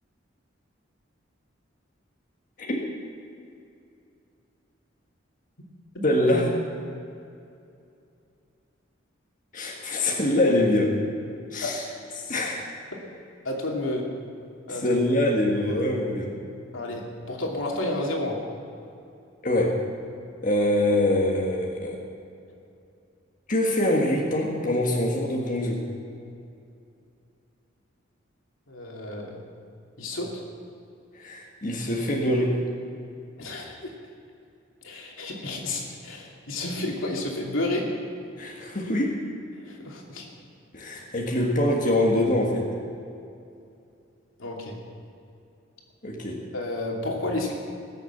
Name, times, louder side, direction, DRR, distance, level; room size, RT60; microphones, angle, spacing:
voice 1, 6.0-6.5 9.5-11.0 11.5-11.8 12.3-12.6 14.7-16.3 19.4-19.8 20.4-22.0 23.5-25.8 31.2-32.6 38.4-39.2 40.7-42.7 46.0-46.4, left 1 dB, 40° left, -2 dB, 1.7 m, -24 dB
voice 2, 13.4-14.1 14.7-15.0 16.7-18.4 28.7-29.4 30.0-30.4 33.4-33.9 34.8-37.8 39.6-40.2 44.4-44.8 46.5-47.5, left 2 dB, 85° left, -1 dB, 2.7 m, -31 dB
20.0 x 6.9 x 8.1 m, 2.5 s
head